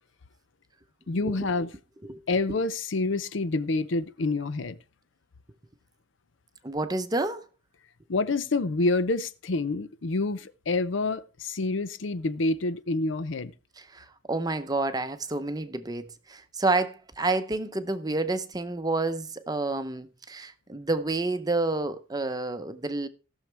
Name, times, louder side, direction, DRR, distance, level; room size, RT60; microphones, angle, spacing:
voice 1, 1.1-1.7 2.3-4.8 8.1-13.5, left 3 dB, 70° left, 0.6 m, -27 dB
voice 2, 6.6-7.4 13.8-23.1, right 2 dB, 20° right, 0.7 m, -29 dB
18.0 x 6.4 x 3.4 m
head